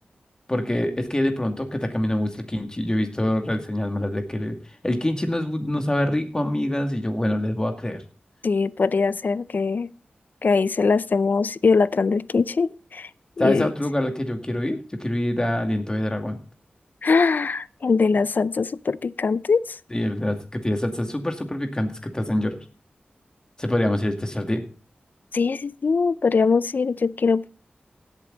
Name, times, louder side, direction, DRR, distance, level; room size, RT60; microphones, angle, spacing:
voice 1, 0.5-4.6 4.8-8.0 13.4-16.4 19.9-22.6 23.6-24.6, left 1 dB, 20° left, 2.3 m, -25 dB
voice 2, 8.4-9.9 10.4-13.1 13.4-13.7 17.0-19.8 25.3-27.5, left 4 dB, 60° left, 0.5 m, -22 dB
16.5 x 8.3 x 4.0 m
wide cardioid pair, 75°, 3 cm